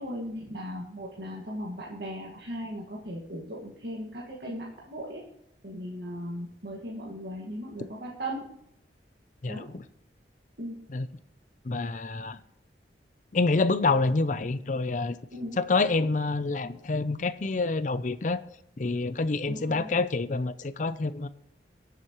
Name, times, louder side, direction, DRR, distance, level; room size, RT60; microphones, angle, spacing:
voice 1, 0.0-5.2 5.6-8.4 9.5-9.7 10.6-10.8 15.3-15.6 19.5-19.9, equal, 70° right, -4 dB, 1.9 m, -37 dB
voice 2, 9.4-9.8 10.9-11.1 11.7-12.4 13.3-15.2 15.6-18.4 18.8-21.3, left 3 dB, 45° left, 13 dB, 0.5 m, -27 dB
22.5 x 7.5 x 3.1 m, 0.74 s
head